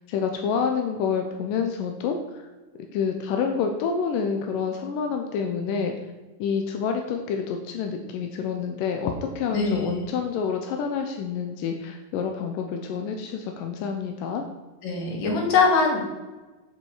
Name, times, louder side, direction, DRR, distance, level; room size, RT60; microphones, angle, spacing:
voice 1, 0.1-2.5 2.9-5.9 6.4-14.4, left 6 dB, 85° left, 4 dB, 2.4 m, -28 dB
voice 2, 9.5-10.0 14.8-16.0, left 4 dB, 55° left, 0 dB, 3.3 m, -22 dB
13.5 x 5.5 x 4.8 m, 1.2 s
omnidirectional pair, 3.9 m